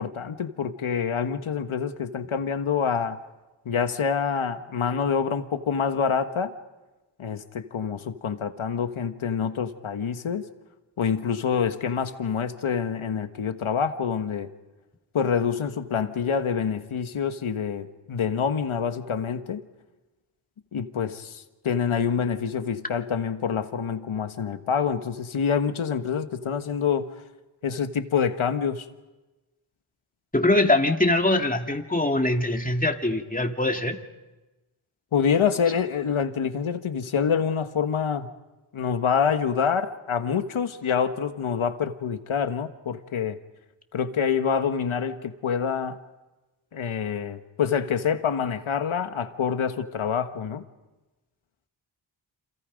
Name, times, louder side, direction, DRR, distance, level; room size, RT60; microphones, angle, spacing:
voice 1, 0.0-3.2 3.6-6.5 7.2-10.5 11.0-14.5 15.1-19.6 20.7-27.1 27.6-28.9 35.1-38.3 38.7-43.4 43.9-46.0 46.7-50.6, left 7 dB, 85° left, 9 dB, 1.5 m, -26 dB
voice 2, 30.3-34.0, left 2 dB, 15° left, 4 dB, 2.3 m, -23 dB
29.0 x 27.0 x 5.3 m, 1.1 s
cardioid pair, 45°, 47 cm